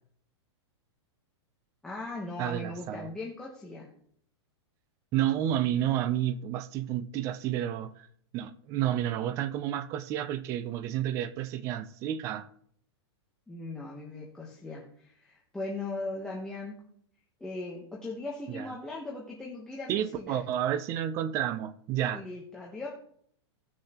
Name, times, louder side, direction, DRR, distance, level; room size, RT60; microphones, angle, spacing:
voice 1, 1.8-3.9 13.5-16.8 17.4-20.4 22.1-22.9, left 2 dB, 5° left, 1.0 m, -39 dB
voice 2, 2.4-3.1 5.1-8.1 8.3-12.5 18.5-18.7 19.9-22.2, right 11 dB, 20° right, 0.4 m, -30 dB
16.5 x 6.5 x 2.9 m
supercardioid pair, 165°, 15 cm